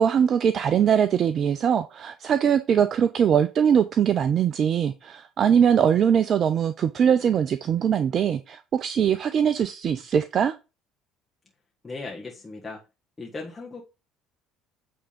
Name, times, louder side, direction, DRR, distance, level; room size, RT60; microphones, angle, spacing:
voice 1, 0.0-10.5, right 8 dB, 45° right, 0.5 m, -22 dB
voice 2, 11.8-12.8 13.2-13.8, left 3 dB, 25° left, 1.6 m, -37 dB
8.5 x 3.6 x 5.1 m
hypercardioid pair, 60°, 0 cm